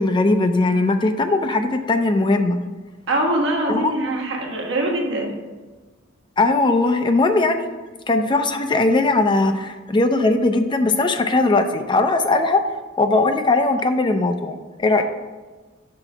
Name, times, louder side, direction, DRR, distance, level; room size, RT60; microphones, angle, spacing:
voice 1, 0.0-2.6 3.7-3.9 6.4-7.7 8.1-12.6 13.0-15.0, left 2 dB, 25° left, 7 dB, 0.4 m, -19 dB
voice 2, 3.1-5.3 15.0-15.1, right 1 dB, 65° right, -1 dB, 1.3 m, -23 dB
5.8 x 3.9 x 6.0 m, 1.3 s
head